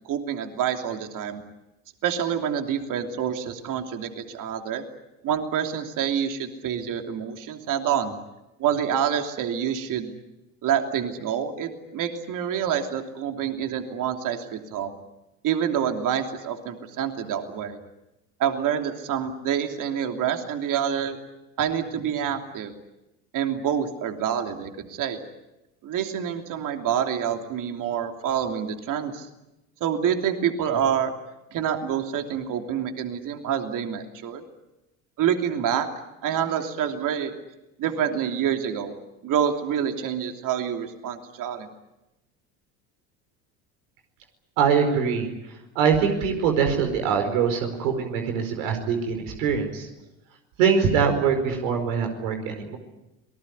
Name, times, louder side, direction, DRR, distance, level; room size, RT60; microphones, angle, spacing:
voice 1, 0.1-1.4 2.0-4.8 5.2-8.1 8.6-10.1 10.6-14.9 15.4-17.8 18.4-21.2 21.6-22.8 23.3-25.2 25.8-29.3 29.8-31.1 31.5-34.4 35.2-35.9 36.2-37.3 37.8-38.9 39.2-41.7, right 8 dB, 55° right, 5 dB, 3.1 m, -27 dB
voice 2, 44.6-45.3 45.7-49.9 50.6-52.8, right 6 dB, 80° right, 5 dB, 4.8 m, -23 dB
27.5 x 19.5 x 9.7 m, 0.97 s
supercardioid pair, 95°, 39 cm